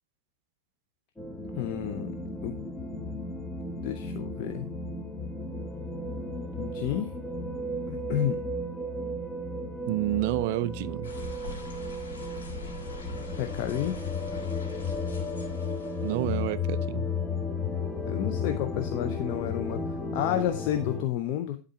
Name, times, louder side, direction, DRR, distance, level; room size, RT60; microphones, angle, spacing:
sound 1, 1.2-21.0, left 3 dB, 15° left, 1.1 m, -34 dB
voice 1, 1.6-2.1 2.4-2.5 3.8-4.7 6.6-7.1 7.9-8.4 13.3-14.0 18.0-21.6, left 11 dB, 45° left, 0.7 m, -31 dB
voice 2, 9.9-11.1 16.0-17.1, right 14 dB, 50° right, 0.3 m, -29 dB
sound 2, 11.0-16.5, left 2 dB, 65° left, 2.5 m, -43 dB
11.5 x 3.8 x 4.2 m
figure-of-eight pair, 90°, 0 cm